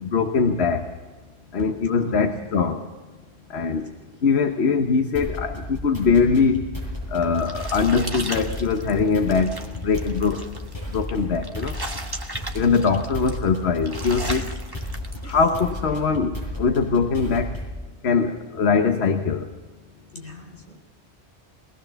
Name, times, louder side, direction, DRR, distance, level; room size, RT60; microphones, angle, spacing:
voice 1, 0.0-0.9 1.5-2.8 3.5-3.9 4.2-6.7 7.1-10.5 10.9-11.7 12.5-14.5 15.3-17.5 18.0-19.5, left 5 dB, 70° left, 6 dB, 1.4 m, -22 dB
voice 2, 2.0-2.4 14.2-14.6 15.2-15.4 20.1-20.8, left 1 dB, 50° left, 2 dB, 4.0 m, -38 dB
sound 1, 5.1-17.8, left 1 dB, 25° left, 8.2 m, -33 dB
sound 2, 6.8-15.7, right 2 dB, 20° right, 1.6 m, -37 dB
21.0 x 20.0 x 7.0 m, 1.3 s
omnidirectional pair, 1.1 m